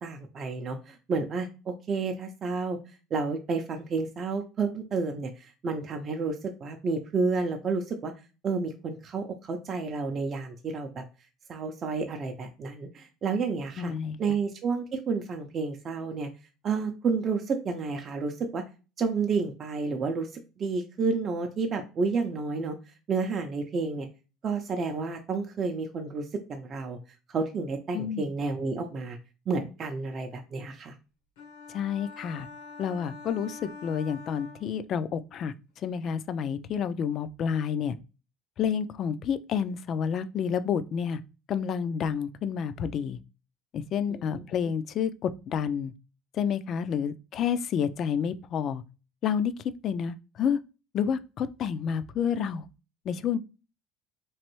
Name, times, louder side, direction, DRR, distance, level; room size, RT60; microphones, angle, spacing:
voice 1, 0.0-2.8 3.1-8.1 8.4-11.0 11.5-13.9 14.2-16.3 16.6-18.6 19.0-20.3 20.6-22.8 23.1-24.1 24.4-27.0 27.3-29.2 29.5-30.9 44.1-44.4, right 4 dB, 40° right, 0.5 m, -30 dB
voice 2, 13.8-14.2 27.9-28.3 31.7-32.5 32.8-35.5 35.8-37.9 38.6-41.2 41.5-43.2 43.7-45.9 46.3-48.8 49.2-50.6 50.9-52.7 53.1-53.4, left 7 dB, 50° left, 0.3 m, -29 dB
sound 1, 31.4-35.2, left 4 dB, 85° left, 0.9 m, -45 dB
3.1 x 2.6 x 3.0 m
supercardioid pair, 85°, 0 cm